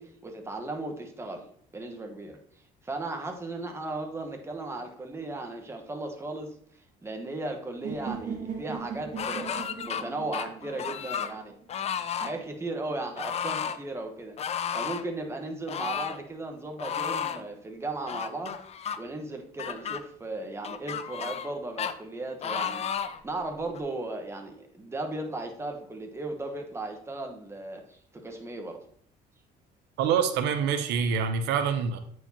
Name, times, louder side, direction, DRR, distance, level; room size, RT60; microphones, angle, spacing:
voice 1, 0.0-2.4 2.8-11.5 12.2-14.4 14.7-18.6 19.0-22.8 23.2-28.8, right 2 dB, 15° right, 3 dB, 1.1 m, -36 dB
sound 1, 7.8-11.8, right 6 dB, 50° right, 1.6 m, -39 dB
sound 2, 9.2-10.0 10.3-11.3 11.7-12.3 13.2-13.8 14.4-15.0 15.7-16.2 16.8-17.4 18.1-19.0 19.6-20.0 20.6-21.5 21.8-21.9 22.4-23.2 23.7-23.8, left 8 dB, 40° left, 0.5 m, -32 dB
voice 2, 30.0-32.0, right 7 dB, 85° right, 8 dB, 0.7 m, -26 dB
8.8 x 4.7 x 2.8 m, 0.63 s
cardioid pair, 110°, 17 cm